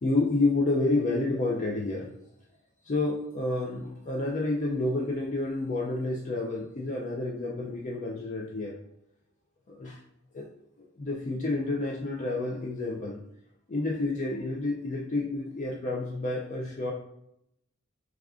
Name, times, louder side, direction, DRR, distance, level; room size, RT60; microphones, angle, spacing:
voice 1, 0.0-2.1 2.8-8.7 9.7-10.0 10.3-10.5 10.8-13.2 13.7-16.9, left 2 dB, 35° left, -2 dB, 0.4 m, -29 dB
4.7 x 2.3 x 2.4 m, 0.77 s
head